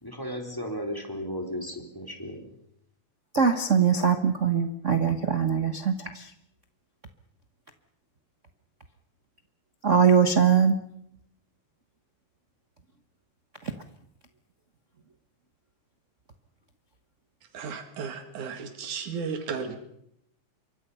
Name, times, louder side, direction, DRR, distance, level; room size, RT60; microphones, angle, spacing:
voice 1, 0.0-2.6, equal, 5° left, 3.6 m, -35 dB
voice 2, 3.3-6.3 9.8-10.8, right 7 dB, 65° right, 0.7 m, -22 dB
voice 3, 17.5-19.8, right 6 dB, 90° right, 3.5 m, -34 dB
27.5 x 24.0 x 5.6 m
omnidirectional pair, 3.4 m